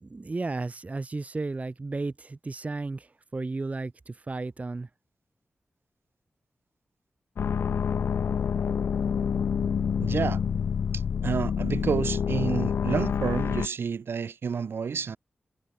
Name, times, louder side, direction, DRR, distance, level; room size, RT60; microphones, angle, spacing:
voice 1, 0.0-4.9, right 3 dB, 40° right, 0.9 m, -34 dB
sound 1, 7.4-13.7, left 7 dB, 85° left, 1.3 m, -27 dB
voice 2, 10.0-10.4 11.2-15.2, right 6 dB, 80° right, 2.0 m, -29 dB
cardioid pair, 50°, 4 cm